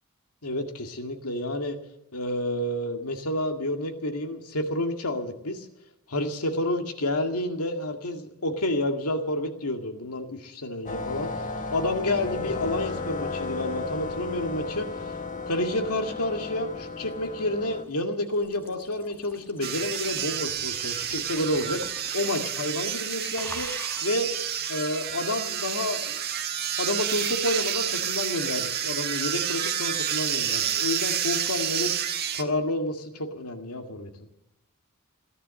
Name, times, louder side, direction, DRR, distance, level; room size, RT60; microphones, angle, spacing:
voice 1, 0.4-1.8 2.1-5.7 6.1-15.1 15.5-21.8 22.1-23.7 24.0-24.3 24.7-26.2 26.8-31.9 32.3-34.1, left 1 dB, 80° left, 5 dB, 2.1 m, -29 dB
sound 1, 10.9-17.8, left 3 dB, 35° left, 1.4 m, -34 dB
sound 2, 17.0-22.5 22.7-23.0 23.3-24.2 25.1-25.2, left 1 dB, 10° left, 1.3 m, -46 dB
sound 3, 19.6-32.4, right 9 dB, 45° right, 1.4 m, -29 dB
17.0 x 11.0 x 7.6 m, 0.85 s
head